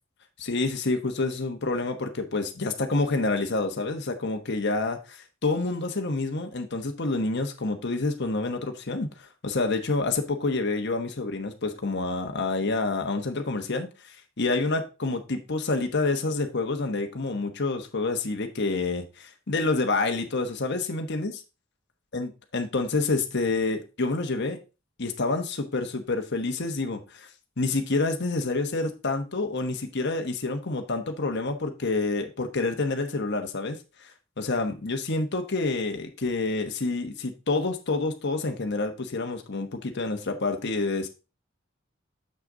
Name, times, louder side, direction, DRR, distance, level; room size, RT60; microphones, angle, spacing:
voice 1, 0.4-21.3 22.1-24.6 25.0-27.3 27.6-34.1 34.4-41.1, left 3 dB, 60° left, 5 dB, 1.2 m, -28 dB
6.9 x 6.5 x 3.8 m, 0.29 s
head